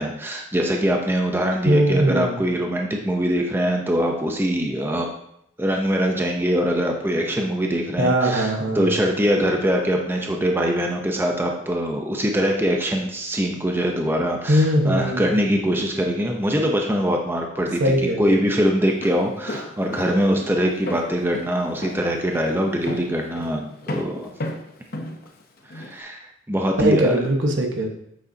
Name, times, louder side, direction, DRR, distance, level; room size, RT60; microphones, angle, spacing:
voice 1, 0.0-5.1 5.6-8.5 8.7-24.3 25.7-27.1, equal, 10° right, 1 dB, 0.7 m, -23 dB
voice 2, 1.6-2.5 8.0-9.1 14.5-15.4 17.8-18.4 26.8-27.9, right 1 dB, 75° right, 2 dB, 1.2 m, -21 dB
Walk footsteps, 18.8-26.0, left 1 dB, 50° left, 0.7 m, -34 dB
8.0 x 6.7 x 2.8 m, 0.74 s
head